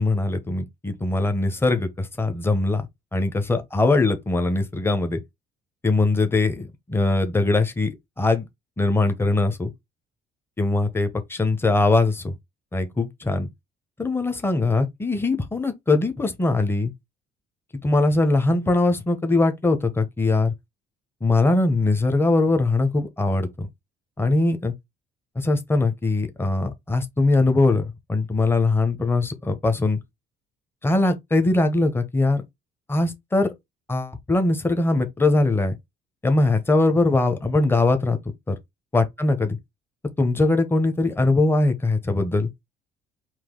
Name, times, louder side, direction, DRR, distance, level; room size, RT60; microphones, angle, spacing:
voice 1, 0.0-2.9 3.1-5.2 5.8-8.5 8.8-9.7 10.6-12.3 12.7-13.5 14.0-16.9 17.8-20.5 21.2-23.7 24.2-24.7 25.3-30.0 30.8-32.4 32.9-33.5 33.9-35.7 36.2-38.2 38.5-38.6 38.9-39.6 40.2-42.5, left 2 dB, 15° left, 1.0 m, -21 dB
4.6 x 2.7 x 3.8 m
cardioid pair, 110°, 17 cm